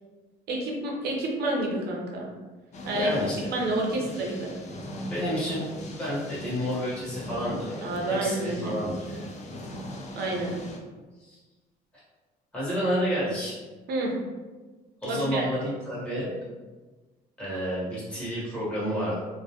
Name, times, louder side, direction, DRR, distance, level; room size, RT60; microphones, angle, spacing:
voice 1, 0.5-2.3 2.8-3.2 3.5-4.5 7.8-8.8 10.2-10.5 13.9-14.1 15.0-15.5, right 1 dB, 70° right, -1 dB, 0.6 m, -29 dB
sound 1, 2.7-10.8, equal, 45° left, 0.4 m, -40 dB
voice 2, 2.9-3.5 5.1-9.3 11.2-11.4 12.5-13.6 15.0-16.4 17.4-19.2, equal, 5° left, -10 dB, 1.1 m, -30 dB
2.2 x 2.1 x 2.8 m, 1.3 s
cardioid pair, 110°, 17 cm